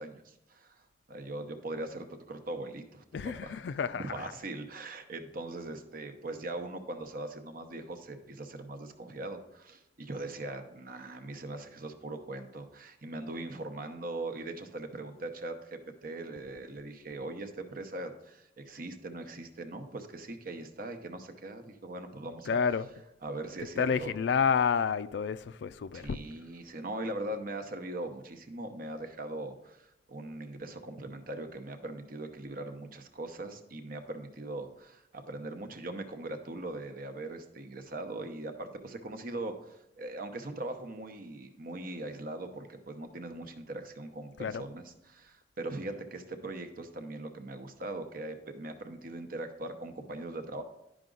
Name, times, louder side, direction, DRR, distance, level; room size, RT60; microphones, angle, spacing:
voice 1, 0.0-3.0 3.4-3.6 4.0-22.6 23.2-24.1 25.9-50.6, right 2 dB, 55° right, 0.8 m, -40 dB
voice 2, 3.1-4.2 22.5-22.9 23.8-26.2 44.4-44.6, left 6 dB, 70° left, 0.4 m, -29 dB
11.0 x 5.0 x 3.8 m
head